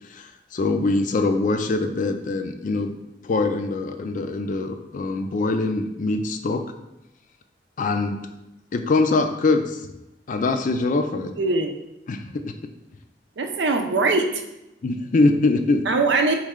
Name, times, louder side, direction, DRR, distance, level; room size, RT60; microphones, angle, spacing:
voice 1, 0.1-2.9 3.2-6.6 7.8-8.2 8.7-9.8 10.3-11.3 12.1-12.5 14.8-15.8, left 3 dB, 50° left, 7 dB, 0.4 m, -23 dB
voice 2, 11.2-11.7 13.4-14.4 15.9-16.3, right 3 dB, 90° right, 4 dB, 0.6 m, -22 dB
4.2 x 3.1 x 3.6 m, 0.91 s
head